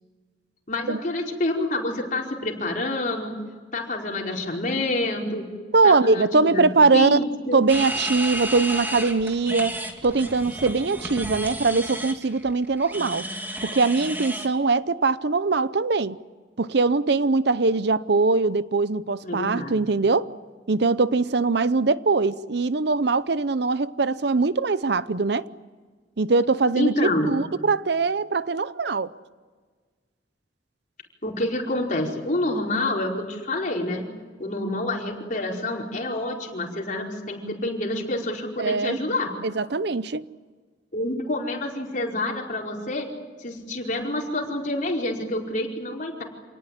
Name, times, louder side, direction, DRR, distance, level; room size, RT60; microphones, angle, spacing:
voice 1, 0.7-3.3 3.7-5.4 5.8-7.6 19.2-19.8 26.8-27.4 31.2-34.0 34.4-39.3 40.9-43.1 43.4-46.2, left 1 dB, 45° left, 4.9 m, -27 dB
voice 2, 5.7-7.2 7.5-9.8 10.0-13.3 13.6-16.2 16.6-20.3 20.7-25.5 26.2-26.9 27.2-29.1 38.6-39.0 39.4-40.2, right 3 dB, 65° right, 0.7 m, -22 dB
sound 1, 7.7-14.5, right 1 dB, 10° right, 2.5 m, -32 dB
27.5 x 18.5 x 9.9 m
head